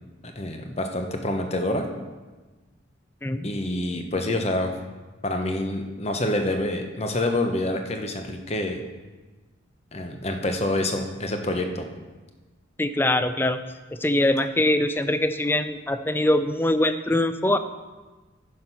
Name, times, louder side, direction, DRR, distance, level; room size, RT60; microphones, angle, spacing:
voice 1, 0.2-1.9 3.4-4.7 5.2-8.8 9.9-11.8, left 1 dB, 30° left, 5 dB, 0.9 m, -27 dB
voice 2, 12.8-13.6 14.0-17.6, left 1 dB, 10° left, 10 dB, 0.4 m, -23 dB
10.5 x 6.1 x 5.5 m, 1.3 s
head